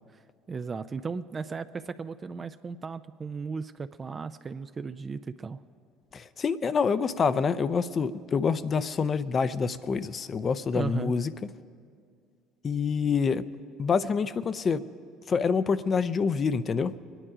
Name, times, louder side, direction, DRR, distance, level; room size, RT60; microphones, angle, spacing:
voice 1, 0.5-5.6 10.7-11.1, right 5 dB, 30° right, 10 dB, 0.4 m, -35 dB
voice 2, 6.1-11.3 12.6-13.4 13.8-14.9 15.3-16.9, left 5 dB, 40° left, 15 dB, 0.6 m, -26 dB
23.0 x 10.0 x 4.9 m, 2.2 s
supercardioid pair, 80°, 0 cm